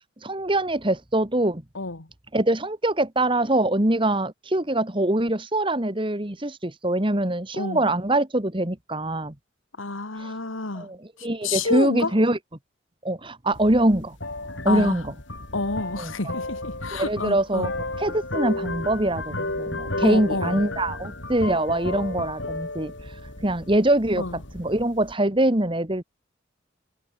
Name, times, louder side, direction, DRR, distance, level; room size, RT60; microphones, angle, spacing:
voice 1, 0.2-1.6 2.3-9.3 10.2-10.3 10.8-12.4 13.0-14.2 14.6-15.1 16.0-16.1 16.9-17.7 18.0-22.9 23.4-24.2 24.5-26.0, right 1 dB, 25° right, 1.9 m, -23 dB
voice 2, 1.7-2.1 7.5-7.8 9.8-10.9 11.4-12.1 14.7-15.0 15.5-17.7 20.0-20.6 24.2-24.4, left 3 dB, 85° left, 2.2 m, -29 dB
sound 1, 13.5-25.1, left 2 dB, 65° left, 6.9 m, -33 dB
head